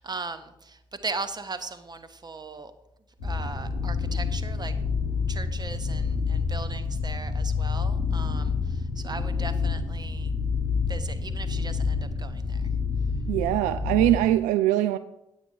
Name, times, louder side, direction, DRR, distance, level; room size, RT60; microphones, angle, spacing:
voice 1, 0.0-2.7 3.2-4.7 5.3-10.3 10.9-12.7, right 3 dB, 30° right, 1.2 m, -38 dB
sound 1, 3.2-14.2, left 5 dB, 75° left, 2.9 m, -28 dB
voice 2, 13.3-15.0, right 14 dB, 70° right, 0.4 m, -22 dB
9.1 x 8.5 x 4.8 m
hypercardioid pair, 40°, 14 cm